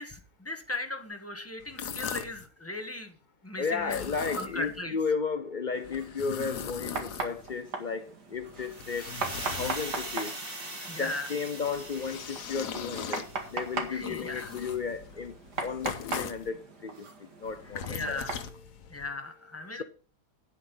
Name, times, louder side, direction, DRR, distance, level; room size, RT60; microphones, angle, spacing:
voice 1, 0.0-3.1 3.4-5.0 10.9-11.3 13.9-14.5 17.7-18.4 18.9-19.8, left 2 dB, 10° left, 1.4 m, -37 dB
sound 1, 1.6-2.5 3.8-4.8 5.8-7.6 8.3-10.2 11.6-16.5 17.4-19.1, left 8 dB, 80° left, 1.5 m, -41 dB
voice 2, 3.6-9.1 9.6-10.3 11.0-13.2 13.5-15.4 15.6-17.1 17.4-18.2, left 5 dB, 55° left, 0.5 m, -33 dB
sound 2, 5.7-18.5, right 4 dB, 85° right, 2.6 m, -40 dB
sound 3, 8.7-13.7, right 1 dB, 35° right, 3.2 m, -41 dB
9.9 x 8.7 x 5.4 m
omnidirectional pair, 1.7 m